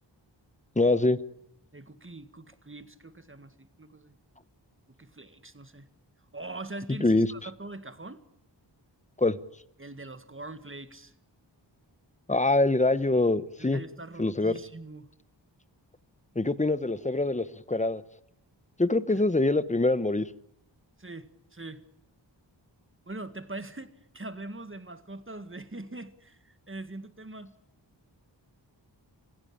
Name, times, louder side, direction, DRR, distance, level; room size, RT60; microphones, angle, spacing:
voice 1, 0.8-1.2 7.0-7.3 9.2-9.4 12.3-13.8 14.2-14.5 16.3-18.0 18.8-20.3, left 2 dB, 15° left, 1.0 m, -24 dB
voice 2, 1.7-4.2 5.0-5.9 6.3-8.2 9.8-11.1 13.6-15.1 21.0-21.8 23.1-27.5, right 2 dB, 25° right, 1.9 m, -42 dB
26.0 x 16.0 x 8.8 m
wide cardioid pair, 60°, 45 cm